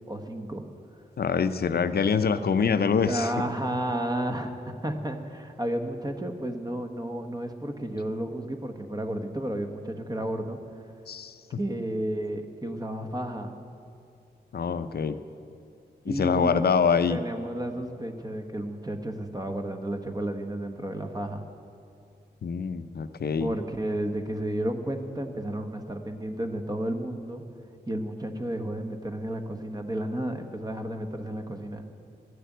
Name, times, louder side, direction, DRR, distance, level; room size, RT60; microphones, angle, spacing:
voice 1, 0.1-0.6 3.0-10.8 11.6-13.5 16.1-16.7 17.1-21.4 23.4-27.4 27.9-31.8, right 1 dB, 20° right, 5 dB, 1.2 m, -32 dB
voice 2, 1.2-3.3 11.1-11.4 14.5-15.2 16.1-17.2 22.4-23.5, left 6 dB, 65° left, 12 dB, 0.6 m, -25 dB
12.5 x 6.7 x 9.2 m, 2.6 s
cardioid pair, 60°, 17 cm